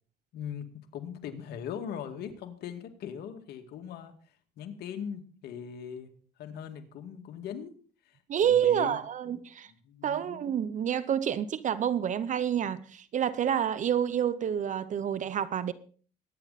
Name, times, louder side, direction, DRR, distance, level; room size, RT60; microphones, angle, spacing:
voice 1, 0.3-4.2 4.6-6.1 6.4-7.8 8.0-9.0 9.2-9.4 9.7-10.5, left 8 dB, 70° left, 2.2 m, -40 dB
voice 2, 8.3-9.7 10.0-15.7, right 9 dB, 45° right, 0.8 m, -28 dB
22.5 x 9.8 x 4.2 m
cardioid pair, 110°, 17 cm